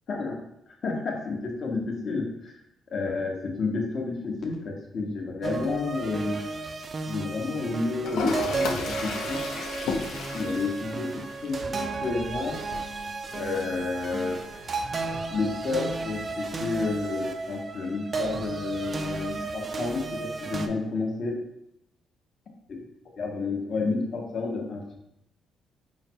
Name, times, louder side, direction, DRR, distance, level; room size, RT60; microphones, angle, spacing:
voice 1, 0.7-2.6 2.9-6.4 7.0-9.4 10.3-12.6 13.3-14.7 15.3-21.4 22.7-22.8 23.2-25.0, left 3 dB, 50° left, 1 dB, 0.9 m, -30 dB
sound 1, 5.4-20.7, right 4 dB, 30° right, 0.3 m, -34 dB
Toilet flush, 8.0-16.0, left 3 dB, 85° left, 0.6 m, -35 dB
4.9 x 2.0 x 4.4 m, 0.80 s
cardioid pair, 145°, 0 cm